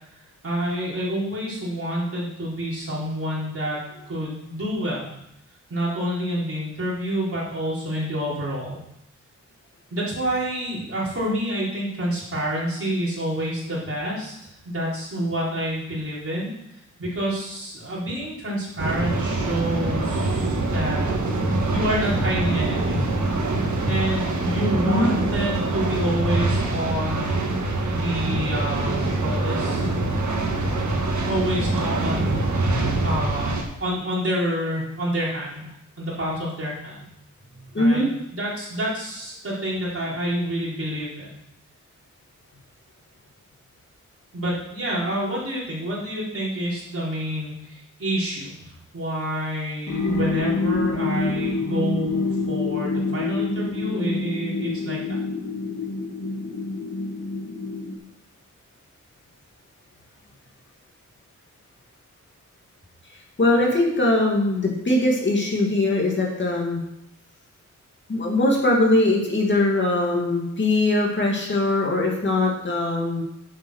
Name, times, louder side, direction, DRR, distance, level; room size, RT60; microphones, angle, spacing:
voice 1, 0.4-5.1 5.7-8.8 9.9-21.1 21.7-23.1 23.8-27.2 27.9-29.9 31.2-32.3 33.0-37.0 37.8-41.3 44.3-55.2, equal, 45° right, -6 dB, 4.5 m, -28 dB
sound 1, 18.8-33.6, right 2 dB, 70° right, 1.9 m, -24 dB
voice 2, 37.7-38.1 51.1-51.2 63.4-66.8 68.1-73.2, left 2 dB, 40° left, -1 dB, 2.3 m, -21 dB
sound 2, 49.9-57.9, left 3 dB, 70° left, 2.8 m, -27 dB
11.0 x 7.4 x 6.4 m, 0.80 s
wide cardioid pair, 175°, 30 cm